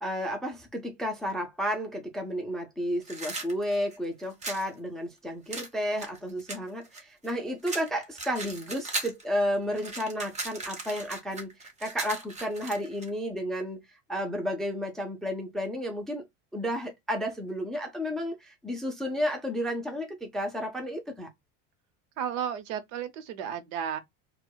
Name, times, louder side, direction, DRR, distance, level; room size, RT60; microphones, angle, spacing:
voice 1, 0.0-13.8 14.1-16.3 16.5-21.3, equal, ahead, 0.4 m, -32 dB
sound 1, 3.0-4.7 5.5-7.3 7.6-9.2 9.5-13.1, right 3 dB, 20° right, 0.9 m, -37 dB
voice 2, 22.2-24.0, right 8 dB, 75° right, 0.9 m, -33 dB
4.3 x 2.3 x 2.2 m
supercardioid pair, 140°, 37 cm